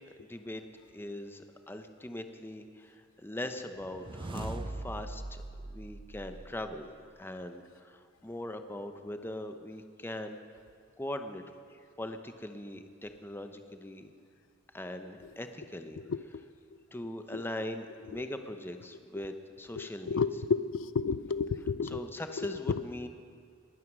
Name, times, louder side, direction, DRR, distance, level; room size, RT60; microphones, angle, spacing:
voice 1, 0.2-0.6 0.9-5.4 5.7-6.9 7.2-10.4 11.0-11.4 11.7-14.1 14.7-16.0 16.9-20.2 21.8-23.1, left 1 dB, 10° left, 7 dB, 0.8 m, -41 dB
sound 1, 3.7-7.0, right 2 dB, 25° right, 0.5 m, -41 dB
voice 2, 16.1-16.4 17.3-17.4 19.8-22.0 22.4-22.8, left 5 dB, 80° left, 14 dB, 0.4 m, -32 dB
20.5 x 9.4 x 6.2 m, 2.2 s
head